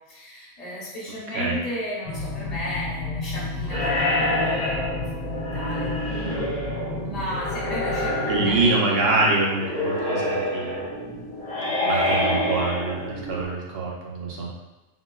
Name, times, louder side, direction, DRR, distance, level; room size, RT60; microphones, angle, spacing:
voice 1, 0.1-4.8 5.1-6.3 7.0-9.2 11.7-12.5, equal, 35° left, -7 dB, 0.9 m, -34 dB
sound 1, 2.0-8.7, left 2 dB, 80° left, 0.9 m, -32 dB
Electric guitar / Strum, 3.6-11.9, left 4 dB, 80° right, 1.3 m, -45 dB
sound 2, 3.7-13.5, left 1 dB, 5° left, 0.7 m, -27 dB
voice 2, 8.3-10.2 10.5-10.9 11.8-14.5, right 3 dB, 60° right, -3 dB, 0.7 m, -24 dB
3.7 x 2.2 x 2.2 m, 1.0 s
omnidirectional pair, 1.3 m